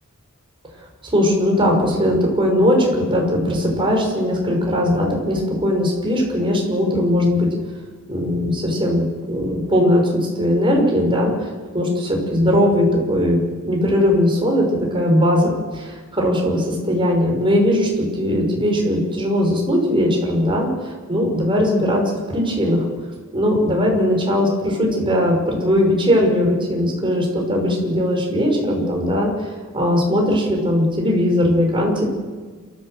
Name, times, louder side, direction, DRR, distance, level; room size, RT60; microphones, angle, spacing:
voice 1, 1.0-7.5 8.1-11.3 11.7-13.4 13.7-22.0 22.3-22.8 23.3-29.3 29.7-32.1, left 1 dB, 25° right, 0 dB, 6.0 m, -19 dB
29.0 x 15.0 x 7.9 m, 1.4 s
head